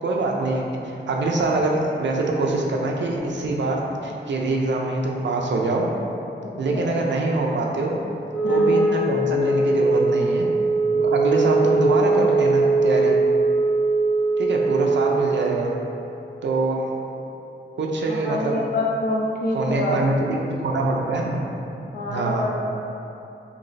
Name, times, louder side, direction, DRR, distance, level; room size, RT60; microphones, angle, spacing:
voice 1, 0.0-5.9 6.6-8.0 8.5-10.5 10.9-13.2 14.4-15.7 16.4-16.8 17.8-18.7 19.5-21.4 22.1-22.4, right 2 dB, 70° right, -1 dB, 0.4 m, -24 dB
voice 2, 6.4-6.9 8.4-8.9 18.0-20.0 21.9-22.6, left 1 dB, 50° left, -4 dB, 0.5 m, -27 dB
Wind instrument woodwind instrument, 8.3-15.4, right 3 dB, ahead, 0.6 m, -20 dB
2.9 x 2.0 x 3.9 m, 2.9 s
wide cardioid pair, 75°, 20 cm